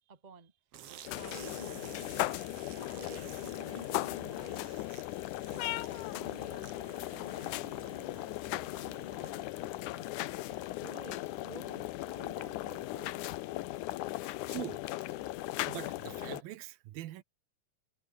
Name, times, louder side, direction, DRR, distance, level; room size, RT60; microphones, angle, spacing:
voice 1, 0.1-0.5 1.1-2.3 2.7-4.7 5.5-10.1 10.5-13.1, right 4 dB, 30° right, 0.8 m, -52 dB
sound 1, 0.7-10.2, right 10 dB, 55° right, 1.8 m, -54 dB
sound 2, 1.0-16.4, left 17 dB, 75° left, 1.9 m, -38 dB
voice 2, 14.5-14.8 15.6-17.2, right 15 dB, 80° right, 2.9 m, -42 dB
omnidirectional pair, 4.2 m